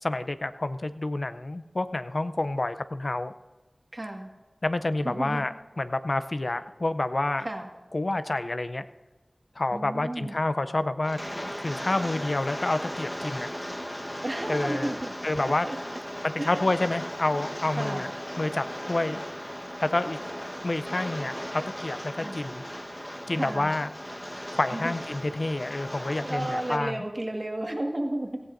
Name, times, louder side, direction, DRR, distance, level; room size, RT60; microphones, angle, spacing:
voice 1, 0.0-3.3 4.6-7.5 7.9-8.8 9.6-11.2 11.6-13.5 14.5-14.9 15.2-15.7 16.2-18.1 18.4-19.2 19.8-20.2 20.6-22.6 23.3-23.9 24.5-27.0, left 2 dB, 65° left, 11 dB, 0.5 m, -28 dB
voice 2, 3.9-4.3 5.0-5.5 7.4-7.7 9.7-10.3 14.2-15.1 15.4-15.8 16.4-16.7 17.7-18.1 22.1-22.4 23.3-23.7 24.7-24.9 26.2-28.4, right 1 dB, 45° right, 2 dB, 1.7 m, -33 dB
Rain, 11.0-26.8, equal, 15° left, 1.2 m, -37 dB
17.5 x 15.0 x 2.6 m, 1.3 s
wide cardioid pair, 55°, 0 cm